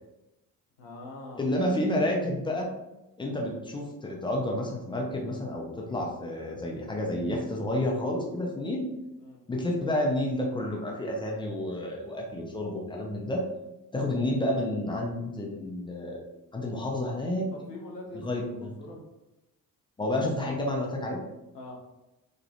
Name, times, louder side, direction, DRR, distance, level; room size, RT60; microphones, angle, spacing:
voice 1, 0.8-1.6 9.2-9.4 17.5-18.3 18.6-19.0 21.5-21.8, left 2 dB, 85° left, -1 dB, 0.6 m, -43 dB
voice 2, 1.4-2.7 3.2-8.9 9.5-13.4 13.9-16.2 16.5-17.5 18.2-18.7 20.0-21.2, left 1 dB, 10° left, -1 dB, 0.3 m, -30 dB
2.3 x 2.1 x 2.6 m, 0.97 s
figure-of-eight pair, 45°, 48 cm